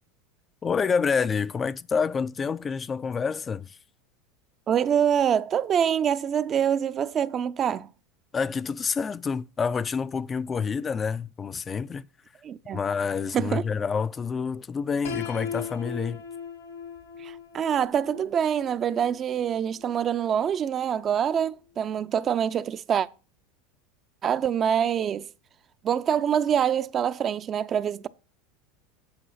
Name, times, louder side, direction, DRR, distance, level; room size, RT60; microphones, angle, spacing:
voice 1, 0.6-3.8 8.3-12.1 12.7-16.2, left 5 dB, 25° left, 0.4 m, -28 dB
voice 2, 4.7-7.9 12.4-12.8 13.3-13.6 17.2-23.1 24.2-25.3 25.8-28.1, right 8 dB, 35° right, 0.5 m, -25 dB
Piano, 15.0-20.9, left 6 dB, 85° left, 2.5 m, -39 dB
8.7 x 5.4 x 5.7 m
hypercardioid pair, 95°, 0 cm